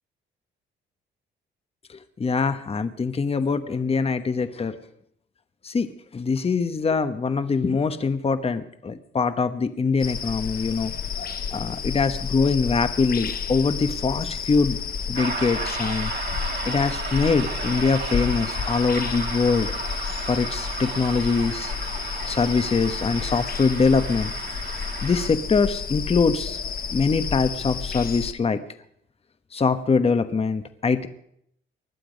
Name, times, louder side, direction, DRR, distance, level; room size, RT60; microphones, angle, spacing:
voice 1, 2.2-4.8 5.6-10.9 11.5-14.8 15.1-16.1 16.6-19.7 20.3-21.7 22.3-24.3 25.0-26.6 26.9-28.6 29.5-31.1, left 4 dB, 30° left, 10 dB, 1.1 m, -23 dB
sound 1, 10.0-28.3, left 7 dB, 50° left, 1.2 m, -31 dB
sound 2, 15.1-25.3, right 5 dB, 55° right, 2.9 m, -34 dB
20.5 x 11.5 x 5.2 m, 0.73 s
cardioid pair, 90°, 20 cm